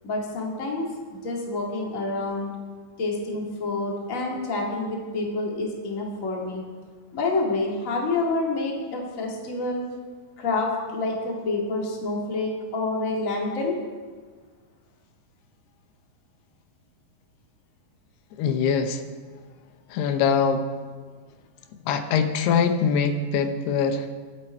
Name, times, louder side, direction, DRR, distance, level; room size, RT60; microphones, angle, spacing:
voice 1, 0.0-2.5 3.0-6.6 7.1-9.8 10.4-13.8, left 2 dB, 30° left, -1 dB, 1.7 m, -28 dB
voice 2, 18.4-19.0 19.9-20.7 21.9-24.1, left 6 dB, 85° left, 7 dB, 2.9 m, -23 dB
22.0 x 8.7 x 4.4 m, 1.5 s
omnidirectional pair, 4.5 m